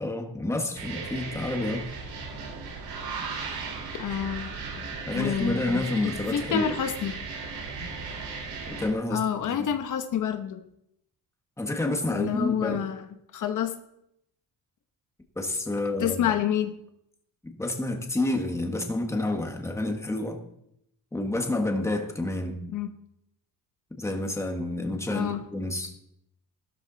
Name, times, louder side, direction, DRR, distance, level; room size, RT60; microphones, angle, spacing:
voice 1, 0.0-1.9 5.1-6.7 8.7-9.7 11.6-12.8 15.3-16.3 17.4-20.4 21.1-22.6 23.9-25.9, left 2 dB, 10° left, 3 dB, 1.5 m, -29 dB
sound 1, 0.7-8.9, right 4 dB, 85° right, 4.5 m, -36 dB
voice 2, 4.0-4.8 5.1-7.2 9.1-10.6 12.1-13.1 13.3-13.8 16.0-16.7 22.7-22.9 25.1-25.4, left 9 dB, 60° left, 7 dB, 1.1 m, -28 dB
14.5 x 13.0 x 4.0 m, 0.76 s
cardioid pair, 155°, 35 cm